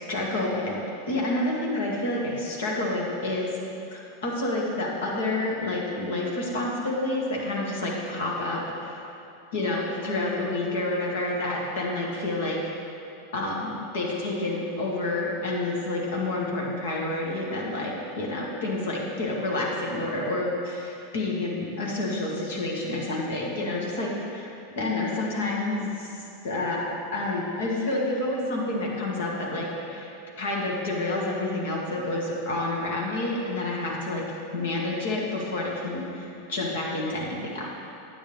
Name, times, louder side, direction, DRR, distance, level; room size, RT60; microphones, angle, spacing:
voice 1, 0.1-0.8 1.1-3.5 3.9-9.0 9.5-12.6 13.3-24.5 24.8-26.2 26.4-30.1 30.4-34.2 34.5-37.8, left 2 dB, 70° left, -3 dB, 2.0 m, -29 dB
9.9 x 8.4 x 3.5 m, 2.8 s
hypercardioid pair, 90°, 0 cm